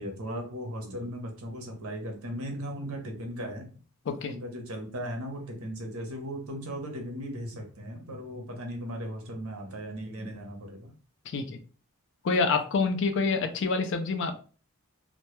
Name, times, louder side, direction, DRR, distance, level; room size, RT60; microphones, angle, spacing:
voice 1, 0.0-3.7 4.3-10.9, equal, 70° right, 3 dB, 0.7 m, -37 dB
voice 2, 11.3-11.6 12.2-14.4, left 4 dB, 55° left, 7 dB, 0.3 m, -27 dB
2.2 x 2.0 x 2.9 m, 0.39 s
head